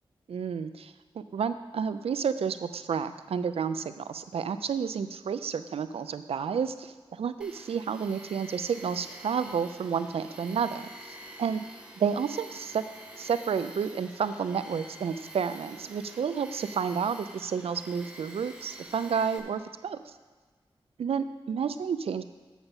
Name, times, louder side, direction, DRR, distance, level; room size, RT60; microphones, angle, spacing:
voice 1, 0.3-11.6 12.0-12.8 13.2-20.1 21.0-22.2, right 6 dB, 85° right, 12 dB, 0.4 m, -31 dB
Tools, 7.4-19.4, right 1 dB, 10° right, 0.9 m, -47 dB
7.2 x 7.0 x 5.4 m, 1.4 s
wide cardioid pair, 90°, 10 cm